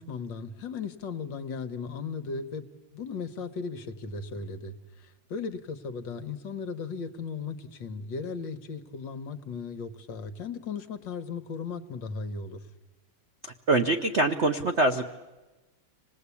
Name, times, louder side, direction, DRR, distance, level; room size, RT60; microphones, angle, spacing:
voice 1, 0.0-2.7 2.9-12.6, left 5 dB, 65° left, 9 dB, 1.7 m, -36 dB
voice 2, 13.4-15.1, right 2 dB, 55° right, 6 dB, 0.7 m, -24 dB
26.5 x 18.5 x 8.4 m, 1.2 s
omnidirectional pair, 2.3 m